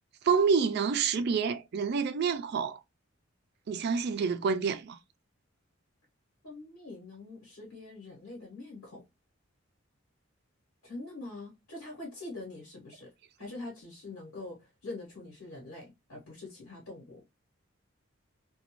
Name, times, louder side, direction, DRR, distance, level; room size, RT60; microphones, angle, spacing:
voice 1, 0.2-2.8 3.7-5.0, right 5 dB, 50° right, 0.3 m, -28 dB
voice 2, 6.4-9.0 10.8-13.1 13.4-17.2, left 2 dB, 75° left, 1.1 m, -44 dB
2.4 x 2.2 x 3.0 m
head